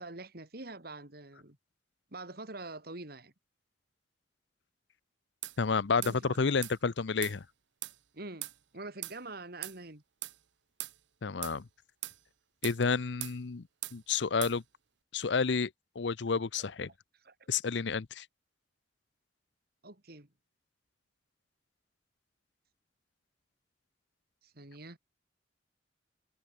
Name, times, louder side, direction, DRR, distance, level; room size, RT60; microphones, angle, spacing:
voice 1, 0.0-1.6 2.1-3.3 6.0-6.4 8.1-10.0 16.6-16.7 17.2-17.5 19.8-20.3 24.4-25.0, right 2 dB, 55° right, 3.3 m, -45 dB
sound 1, 5.4-5.6 6.0-6.2 6.6-6.8 7.2-7.4 7.8-8.0 8.4-8.6 9.0-9.2 9.6-9.8 10.2-10.4 10.8-11.0 11.4-11.6 12.0-12.2 12.6-12.8 13.2-13.4 13.8-14.0 14.4-14.6, right 17 dB, 75° right, 0.9 m, -40 dB
voice 2, 5.6-7.4 11.2-11.7 12.6-13.7 13.9-14.6 15.1-15.7 16.0-16.9 17.5-18.3, left 5 dB, 70° left, 0.7 m, -30 dB
head